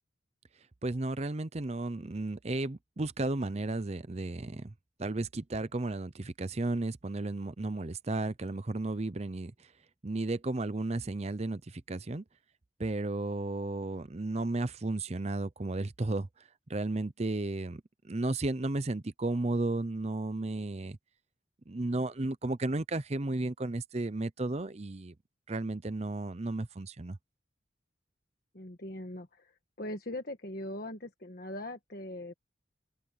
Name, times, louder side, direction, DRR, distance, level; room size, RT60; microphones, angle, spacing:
voice 1, 0.8-4.7 5.0-9.5 10.0-12.2 12.8-16.3 16.7-21.0 21.7-25.1 25.5-27.2, right 2 dB, 35° right, 0.7 m, -33 dB
voice 2, 28.5-32.3, left 1 dB, 50° left, 1.4 m, -41 dB
open air
head